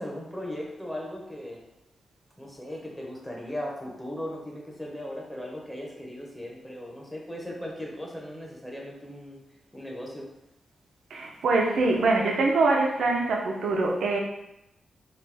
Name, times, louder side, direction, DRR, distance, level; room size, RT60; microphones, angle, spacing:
voice 1, 0.0-1.6 2.4-9.4 9.7-10.3, left 1 dB, 5° left, -2 dB, 1.0 m, -37 dB
voice 2, 11.1-14.2, right 3 dB, 80° right, 1 dB, 0.7 m, -24 dB
3.3 x 3.0 x 3.4 m, 0.84 s
wide cardioid pair, 110°, 0 cm